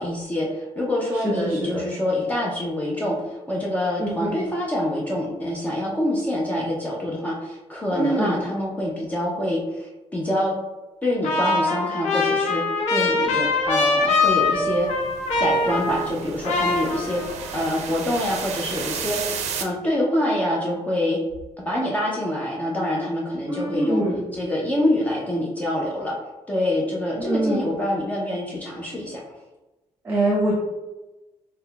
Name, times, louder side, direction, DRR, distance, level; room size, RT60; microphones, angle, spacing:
voice 1, 0.0-10.5 11.0-12.6 12.9-14.9 15.4-19.2 19.6-21.2 21.7-24.0 24.3-26.2 26.5-29.2, left 1 dB, 15° left, -4 dB, 0.5 m, -26 dB
voice 2, 1.2-1.9 4.0-4.1 7.9-8.4 23.5-24.2 27.2-27.7 30.0-30.5, right 1 dB, 20° right, -5 dB, 0.8 m, -24 dB
Trumpet, 11.2-16.2 16.4-17.5, left 3 dB, 80° left, 0.6 m, -23 dB
sound 1, 13.6-19.6, right 6 dB, 80° right, 0.4 m, -33 dB
5.4 x 2.1 x 2.2 m, 1.1 s
cardioid pair, 140°, 11 cm